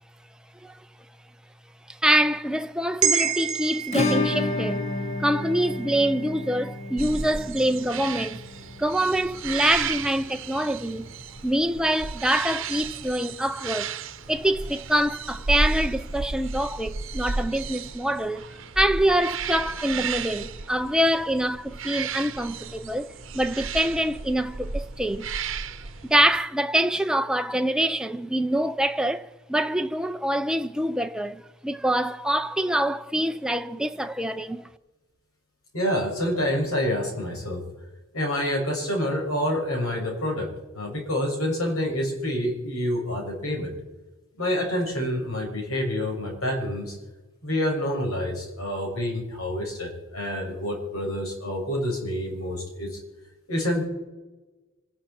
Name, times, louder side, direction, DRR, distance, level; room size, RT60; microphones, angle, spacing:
voice 1, 1.9-4.8 5.2-8.4 8.8-11.1 11.4-13.9 14.3-18.5 18.8-25.3 26.0-34.7, right 1 dB, 5° right, 0.5 m, -25 dB
sound 1, 3.0-7.5 7.9-8.0, right 8 dB, 35° right, 0.9 m, -31 dB
Acoustic guitar / Strum, 3.9-12.5 12.8-12.9 13.2-13.3 13.6-13.7 15.8-15.9 17.0-17.1, left 2 dB, 30° left, 1.1 m, -32 dB
sound 2, 7.0-26.4, right 4 dB, 65° right, 0.9 m, -33 dB
voice 2, 35.7-37.6 38.1-43.7 44.4-47.0 47.4-53.0 53.5-53.8, left 1 dB, 90° left, 6.9 m, -27 dB
26.5 x 11.5 x 4.5 m
head